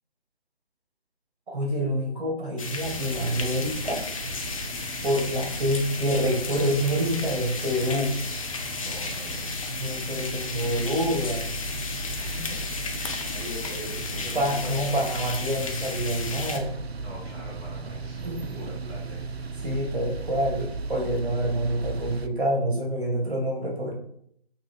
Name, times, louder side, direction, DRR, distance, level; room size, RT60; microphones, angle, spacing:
voice 1, 1.5-4.0 5.0-8.2 9.7-11.5 14.3-16.7 18.2-18.7 19.6-23.9, equal, 55° right, 0 dB, 2.3 m, -27 dB
sound 1, 2.6-16.6, left 4 dB, 35° left, 0.7 m, -34 dB
sound 2, 2.8-22.3, right 3 dB, 75° right, 0.6 m, -37 dB
voice 2, 8.8-9.7 12.1-15.0 17.0-18.3 18.6-19.2, left 1 dB, 25° right, -8 dB, 2.4 m, -42 dB
8.2 x 3.0 x 4.0 m, 0.69 s
figure-of-eight pair, 145°, 31 cm